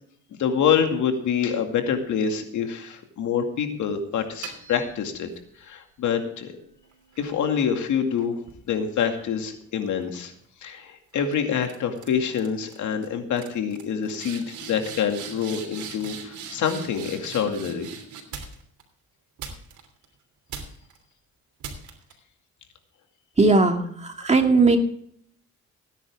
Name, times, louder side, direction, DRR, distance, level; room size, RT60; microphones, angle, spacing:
voice 1, 0.3-5.3 5.6-6.5 7.2-8.3 8.7-10.3 10.6-17.9, left 7 dB, 75° left, 5 dB, 2.3 m, -26 dB
sound 1, 4.2-5.4 6.1-9.6 10.0-10.4 11.1-11.3 11.6-12.1 12.3-12.8 13.0-13.1 13.4-18.8 19.4-20.1 20.5-21.0 21.6-22.1, right 6 dB, 75° right, 3.1 m, -41 dB
voice 2, 23.4-24.8, right 3 dB, 20° right, 4 dB, 2.3 m, -18 dB
17.5 x 10.0 x 3.5 m, 0.63 s
cardioid pair, 90°, 30 cm